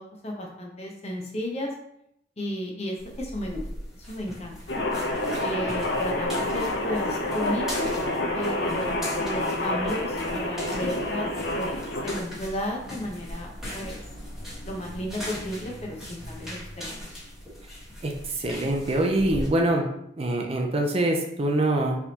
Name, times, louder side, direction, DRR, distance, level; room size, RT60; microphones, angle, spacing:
voice 1, 0.0-1.7 2.4-3.6 4.1-4.6 5.4-8.0 8.3-11.3 11.5-14.0 14.6-17.2, left 1 dB, 35° left, 0 dB, 0.8 m, -33 dB
sound 1, 3.0-19.5, equal, ahead, 1.5 m, -39 dB
sound 2, 4.7-12.2, left 1 dB, 65° left, 0.8 m, -28 dB
voice 2, 18.0-19.8 20.2-22.0, right 1 dB, 30° right, 1 dB, 0.5 m, -24 dB
4.4 x 3.4 x 2.9 m, 0.74 s
head